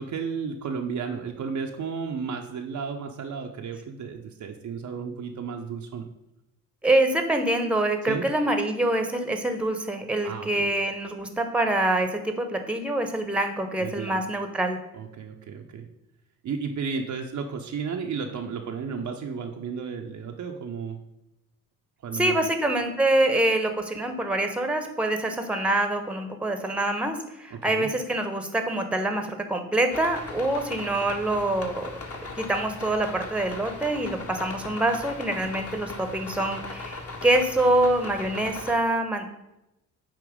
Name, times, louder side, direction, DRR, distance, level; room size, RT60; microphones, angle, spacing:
voice 1, 0.0-6.0 8.1-8.2 10.2-10.7 13.8-14.2 14.9-15.8 16.4-21.0 22.0-22.5 27.5-27.9, right 5 dB, 40° right, 3 dB, 0.7 m, -33 dB
voice 2, 6.8-14.8 22.1-31.9 32.2-39.3, right 1 dB, ahead, 6 dB, 0.9 m, -25 dB
sound 1, 29.9-38.7, left 3 dB, 30° left, 1.2 m, -38 dB
8.7 x 3.0 x 5.0 m, 0.88 s
hypercardioid pair, 55°, 46 cm